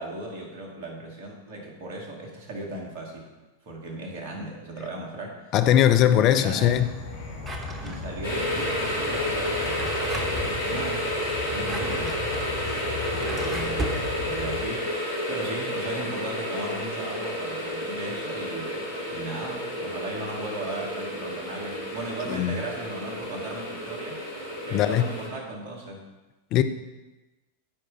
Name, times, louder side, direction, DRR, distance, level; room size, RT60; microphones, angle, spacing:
voice 1, 0.0-3.3 3.7-5.4 6.1-6.7 7.8-9.8 10.1-11.0 11.5-12.2 12.6-12.8 13.1-24.2 24.6-26.0, right 2 dB, 50° right, -1 dB, 2.4 m, -36 dB
voice 2, 5.5-7.0 22.3-22.6 24.7-25.1 26.5-26.6, left 11 dB, 40° left, 9 dB, 0.6 m, -20 dB
Insect / Frog, 6.6-14.7, left 4 dB, 60° left, 2.3 m, -37 dB
Drawer open or close, 7.4-8.4 9.4-10.6 11.4-14.0, right 1 dB, 20° right, 1.2 m, -36 dB
sound 1, 8.2-25.3, left 1 dB, 80° left, 3.3 m, -31 dB
14.5 x 5.0 x 3.3 m, 1.1 s
figure-of-eight pair, 90°, 0 cm